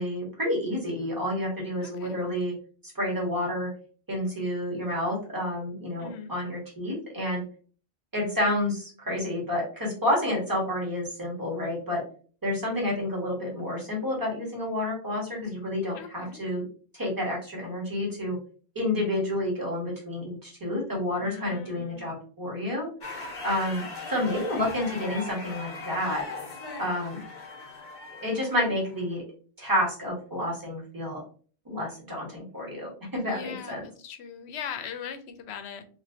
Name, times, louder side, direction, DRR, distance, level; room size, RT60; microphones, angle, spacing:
voice 1, 0.0-2.5 2.8-3.7 4.1-7.4 8.1-12.0 12.4-16.6 16.9-18.4 18.7-22.9 23.4-26.2 26.8-27.2 28.1-29.2 29.6-31.2 31.6-33.8, left 1 dB, 20° right, -3 dB, 1.3 m, -29 dB
voice 2, 1.8-2.2 6.0-6.3 15.9-16.4 21.2-22.2 33.2-35.8, left 7 dB, 80° left, 8 dB, 0.8 m, -40 dB
sound 1, 23.0-29.2, left 3 dB, 50° left, 1.0 m, -39 dB
3.2 x 3.0 x 2.7 m, 0.42 s
omnidirectional pair, 1.1 m